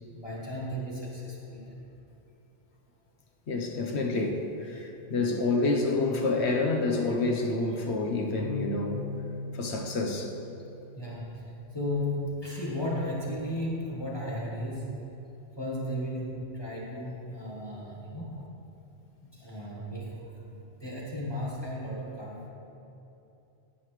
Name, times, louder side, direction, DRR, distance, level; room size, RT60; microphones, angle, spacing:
voice 1, 0.2-1.8 11.0-15.0 15.6-18.4 19.2-22.5, left 1 dB, 20° left, -5 dB, 1.3 m, -35 dB
voice 2, 3.5-9.0 9.5-10.3, left 3 dB, 65° left, 2 dB, 1.2 m, -28 dB
Keyboard (musical), 8.4-11.3, left 4 dB, 45° left, 1.3 m, -40 dB
15.5 x 5.4 x 3.2 m, 3.0 s
omnidirectional pair, 1.2 m